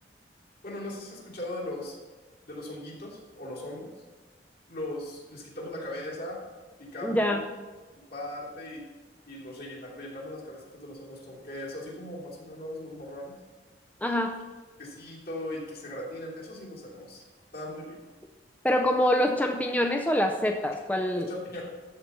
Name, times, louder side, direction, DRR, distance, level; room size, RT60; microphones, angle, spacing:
voice 1, 0.6-2.0 2.4-3.9 4.7-6.4 6.8-7.3 8.1-8.8 9.3-13.4 14.8-17.2 17.5-18.0 21.1-21.6, left 1 dB, 60° left, -4 dB, 3.1 m, -39 dB
voice 2, 7.0-7.4 14.0-14.4 18.6-21.3, left 1 dB, 10° left, 4 dB, 0.5 m, -25 dB
13.0 x 4.6 x 6.9 m, 1.3 s
head